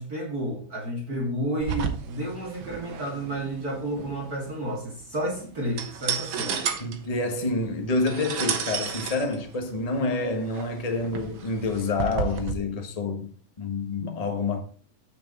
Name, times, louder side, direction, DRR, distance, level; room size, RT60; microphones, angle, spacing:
voice 1, 0.0-6.7, right 1 dB, 30° right, 2.9 m, -31 dB
sound 1, 1.6-12.5, right 7 dB, 55° right, 1.5 m, -33 dB
voice 2, 6.8-13.3 13.6-14.6, left 3 dB, 25° left, 0.7 m, -28 dB
8.8 x 6.6 x 4.1 m
omnidirectional pair, 3.4 m